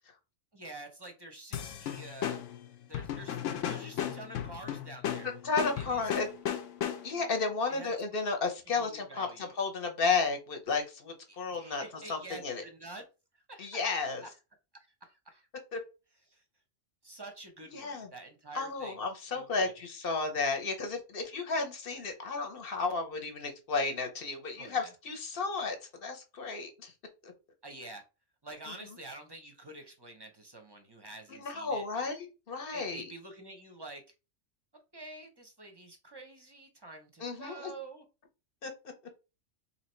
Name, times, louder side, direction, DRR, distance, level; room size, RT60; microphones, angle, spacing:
voice 1, 0.5-2.4 2.9-3.4 3.7-5.3 5.8-6.0 7.7-7.9 8.8-9.5 11.3-13.0 13.5-13.7 14.2-14.3 15.0-15.5 16.3-16.4 17.0-19.0 19.3-19.7 24.6-24.9 27.6-28.0 28.4-31.8 32.7-34.0 34.9-38.0, right 2 dB, 30° right, 0.6 m, -48 dB
sound 1, 1.5-7.3, left 9 dB, 80° left, 1.0 m, -36 dB
voice 2, 5.4-6.3 7.0-12.6 13.6-14.2 15.7-15.8 17.7-18.1 18.5-25.8 26.0-26.9 27.2-27.3 28.7-29.0 31.3-33.1 37.2-37.7 38.6-38.7, left 4 dB, 55° left, 0.9 m, -33 dB
2.9 x 2.8 x 4.3 m
omnidirectional pair, 1.3 m